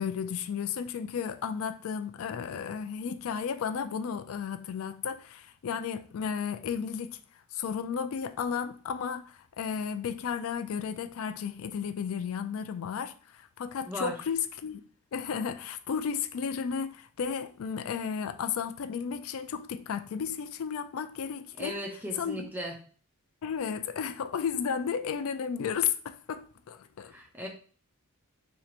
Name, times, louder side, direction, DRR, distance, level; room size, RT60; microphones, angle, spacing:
voice 1, 0.0-7.2 7.5-14.8 15.1-21.8 22.2-22.5 23.4-27.1, left 7 dB, 70° left, 0.3 m, -33 dB
voice 2, 13.9-14.2 21.6-22.8 27.0-27.5, equal, 10° right, 0.4 m, -37 dB
4.4 x 2.8 x 2.4 m
head